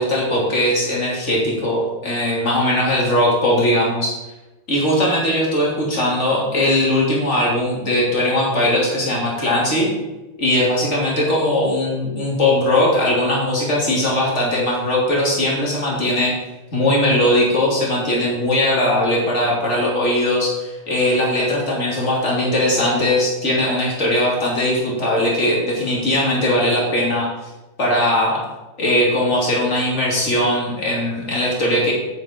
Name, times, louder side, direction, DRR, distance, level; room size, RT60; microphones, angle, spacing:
voice 1, 0.0-4.2 4.7-9.9 10.4-16.4 16.7-27.3 27.8-28.4 28.8-31.9, left 1 dB, 25° left, -4 dB, 1.7 m, -19 dB
10.0 x 9.5 x 4.5 m, 1.1 s
omnidirectional pair, 6.0 m